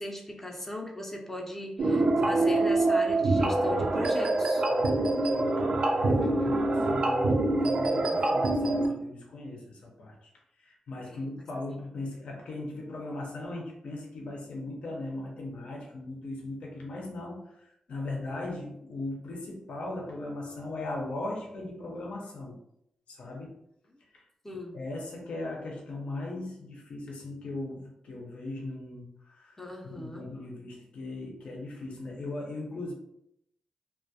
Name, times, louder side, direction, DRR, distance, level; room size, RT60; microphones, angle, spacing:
voice 1, 0.0-4.6 6.1-6.6 11.1-11.2 24.4-24.8 29.6-30.2, left 1 dB, 15° left, 0 dB, 0.5 m, -38 dB
sound 1, 1.8-8.9, right 2 dB, 60° right, 0.4 m, -25 dB
voice 2, 2.0-2.6 4.7-10.3 10.6-22.6 23.1-23.6 24.1-24.3 24.7-32.9, left 2 dB, 80° left, -1 dB, 0.6 m, -39 dB
2.3 x 2.1 x 2.6 m, 0.77 s
cardioid pair, 85°, 2 cm